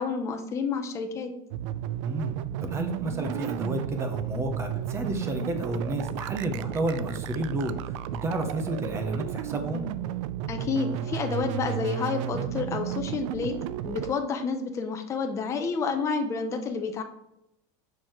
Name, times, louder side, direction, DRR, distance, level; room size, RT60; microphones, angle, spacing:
voice 1, 0.0-1.3 10.5-17.0, left 5 dB, 20° left, 5 dB, 0.6 m, -29 dB
sound 1, 1.5-14.1, right 11 dB, 70° right, 0.4 m, -33 dB
voice 2, 2.0-2.3 2.6-9.8, right 1 dB, 15° right, 6 dB, 0.7 m, -31 dB
6.1 x 4.6 x 4.8 m, 0.82 s
cardioid pair, 175°, 16 cm